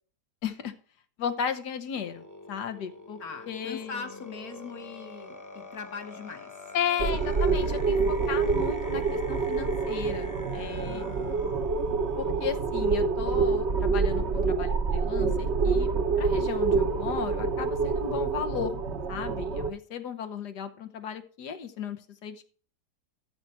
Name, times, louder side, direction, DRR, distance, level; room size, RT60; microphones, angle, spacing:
voice 1, 0.4-0.7 1.2-3.2 3.5-4.0 6.7-8.0 8.3-11.0 12.2-15.9 16.2-18.7 19.1-22.5, left 8 dB, 85° left, 10 dB, 1.6 m, -35 dB
sound 1, 1.9-12.5, left 2 dB, 15° left, 0.8 m, -45 dB
voice 2, 3.2-6.5 10.8-11.5, left 5 dB, 65° left, 5 dB, 1.7 m, -41 dB
sound 2, 7.0-19.7, right 4 dB, 50° right, 1.1 m, -27 dB
13.0 x 4.6 x 5.6 m, 0.41 s
omnidirectional pair, 1.7 m